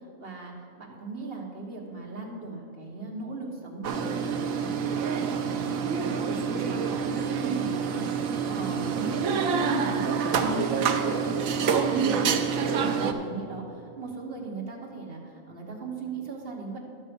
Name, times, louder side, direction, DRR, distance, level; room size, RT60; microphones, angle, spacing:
voice 1, 0.2-5.7 6.0-16.8, right 3 dB, 45° right, -1 dB, 1.5 m, -37 dB
sound 1, 3.8-13.1, right 6 dB, 75° right, 1.1 m, -27 dB
12.0 x 6.4 x 5.3 m, 2.5 s
omnidirectional pair, 1.5 m